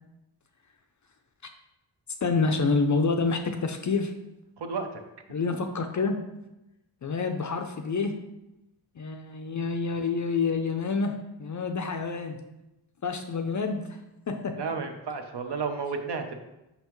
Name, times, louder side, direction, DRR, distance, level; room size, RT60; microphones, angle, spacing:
voice 1, 2.2-4.1 5.3-6.2 7.0-8.1 9.0-12.4 13.0-13.9 14.3-14.6, left 4 dB, 40° left, 6 dB, 0.4 m, -28 dB
voice 2, 4.6-5.0 14.6-16.4, right 5 dB, 55° right, 5 dB, 0.7 m, -32 dB
5.7 x 5.5 x 3.0 m, 0.93 s
wide cardioid pair, 140°, 48 cm